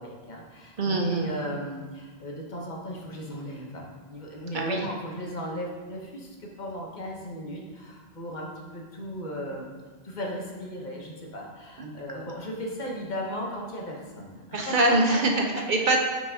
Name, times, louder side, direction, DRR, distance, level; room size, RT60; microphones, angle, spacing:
voice 1, 0.0-9.7 10.0-15.2 15.5-15.6, equal, 50° left, -1 dB, 1.0 m, -36 dB
voice 2, 0.8-1.3 4.5-4.8 11.8-12.3 14.5-16.0, right 2 dB, 55° right, 1 dB, 0.8 m, -24 dB
8.8 x 4.8 x 2.7 m, 1.4 s
omnidirectional pair, 1.0 m